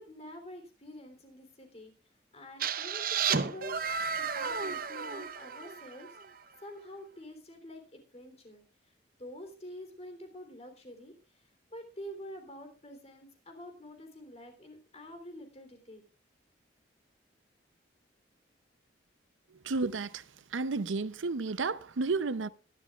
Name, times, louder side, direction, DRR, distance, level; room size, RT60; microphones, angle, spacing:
voice 1, 0.0-1.9 2.3-3.8 4.1-6.2 6.6-8.6 9.2-11.1 11.7-16.0, left 1 dB, 35° left, 3.4 m, -47 dB
sound 1, 2.6-6.3, right 6 dB, 50° right, 0.8 m, -33 dB
voice 2, 19.6-20.2 20.5-22.5, right 3 dB, 85° right, 0.7 m, -32 dB
22.5 x 11.5 x 2.4 m
head